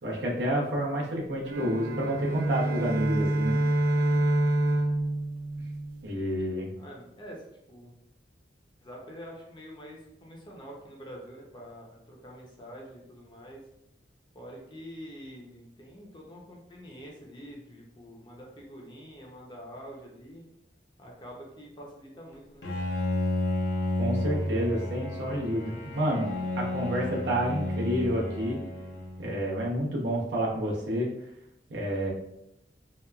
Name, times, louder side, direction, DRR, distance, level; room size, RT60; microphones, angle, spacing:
voice 1, 0.0-3.6 6.0-6.7 24.0-26.3 26.6-28.6 29.2-31.1 31.7-32.1, equal, 85° right, -3 dB, 0.8 m, -29 dB
sound 1, 1.4-6.1, right 1 dB, 55° right, 0.3 m, -27 dB
voice 2, 6.8-8.0 8.8-13.6 14.3-20.5 21.0-22.7, equal, 25° left, -2 dB, 0.5 m, -46 dB
Bowed string instrument, 22.6-29.7, left 1 dB, 80° left, 0.5 m, -32 dB
2.9 x 2.2 x 2.2 m, 0.80 s
head